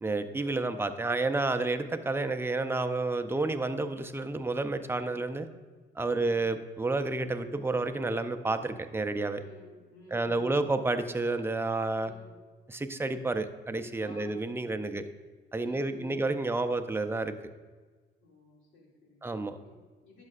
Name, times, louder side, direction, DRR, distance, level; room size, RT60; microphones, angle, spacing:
voice 1, 0.0-5.5 6.0-9.4 10.1-12.1 12.7-15.0 15.5-17.3 19.2-19.6, right 2 dB, 10° right, 8 dB, 0.5 m, -30 dB
voice 2, 9.4-10.7 12.0-12.3 14.0-14.3 14.8-15.0 15.6-16.2 18.2-19.2 19.6-20.2, left 2 dB, 70° left, -3 dB, 2.4 m, -52 dB
10.5 x 6.5 x 2.4 m, 1.4 s
cardioid pair, 90°, 20 cm